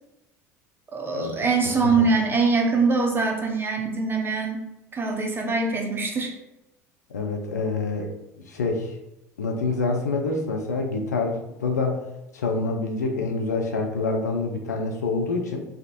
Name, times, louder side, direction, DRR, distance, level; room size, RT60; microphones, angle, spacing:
voice 1, 0.9-4.6 4.9-6.3, right 4 dB, 25° right, 2 dB, 0.7 m, -23 dB
voice 2, 1.6-2.1 7.1-8.1 8.5-8.9 9.4-12.0 12.3-15.7, left 3 dB, 85° left, 2 dB, 0.5 m, -26 dB
3.5 x 2.3 x 2.6 m, 0.91 s
hypercardioid pair, 70°, 9 cm